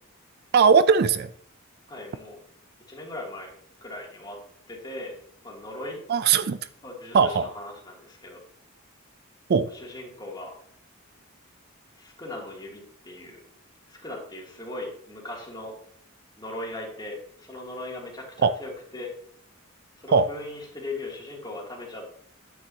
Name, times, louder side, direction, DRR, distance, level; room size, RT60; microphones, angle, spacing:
voice 1, 0.5-1.3 6.1-6.6 7.1-7.5 9.5-9.7 18.4-18.5 20.1-20.3, right 5 dB, 50° right, 0.4 m, -19 dB
voice 2, 1.9-2.4 2.9-3.5 3.8-4.4 4.7-5.2 5.4-6.0 6.8-8.4 9.7-10.5 11.9-13.4 13.9-15.7 16.4-19.1 20.0-22.2, left 2 dB, 20° left, 2.7 m, -38 dB
9.6 x 9.3 x 2.8 m
head